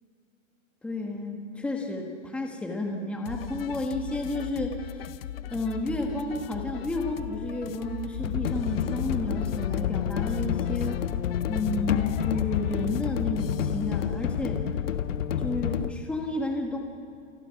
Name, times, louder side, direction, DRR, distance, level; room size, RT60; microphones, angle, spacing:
voice 1, 0.8-4.8 5.5-11.0 11.5-14.6 15.4-16.8, left 2 dB, 5° left, 1 dB, 1.4 m, -31 dB
sound 1, 3.3-13.8, left 12 dB, 45° left, 0.8 m, -39 dB
sound 2, 8.2-15.9, left 9 dB, 70° left, 1.2 m, -29 dB
29.0 x 26.0 x 5.8 m, 2.6 s
supercardioid pair, 170°, 39 cm